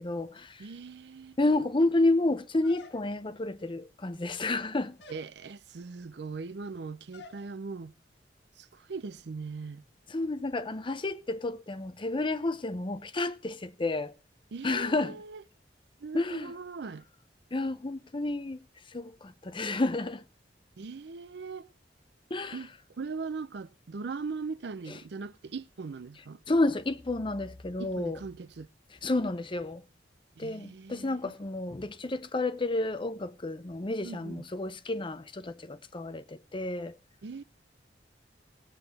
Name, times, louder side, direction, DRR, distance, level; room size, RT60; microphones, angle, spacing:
voice 1, 0.0-0.6 1.4-5.0 10.1-14.1 14.6-15.2 16.1-16.5 17.5-18.6 18.9-20.2 22.3-22.6 24.9-25.0 26.5-28.2 29.0-29.8 30.4-37.0, left 2 dB, 30° left, 0.7 m, -30 dB
voice 2, 0.6-1.4 5.1-7.9 8.6-9.8 14.5-15.4 16.0-17.0 20.8-21.7 22.5-26.4 27.8-28.7 30.4-31.2 34.0-34.4 37.2-37.4, right 4 dB, 65° right, 0.5 m, -40 dB
sound 1, 2.6-3.4 4.2-4.6 5.0-5.3 7.1-7.5, left 5 dB, 80° left, 1.3 m, -50 dB
17.5 x 8.2 x 4.1 m
head